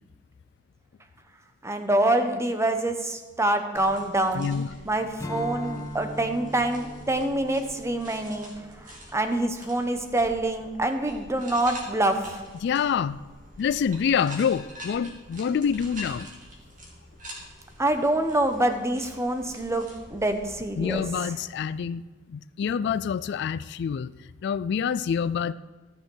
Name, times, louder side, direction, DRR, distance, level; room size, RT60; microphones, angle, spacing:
voice 1, 1.6-4.5 4.8-8.5 9.1-12.4 17.8-21.3, right 1 dB, 15° right, 7 dB, 0.9 m, -26 dB
sound 1, 3.7-21.0, equal, 45° right, 2.6 m, -46 dB
voice 2, 4.3-4.7 12.6-13.2 13.6-16.4 20.8-22.0 22.3-24.1 24.4-25.5, left 7 dB, 60° left, 16 dB, 0.3 m, -26 dB
Strum, 5.2-9.9, equal, 15° left, 0.8 m, -40 dB
13.5 x 6.5 x 6.3 m, 1.3 s
head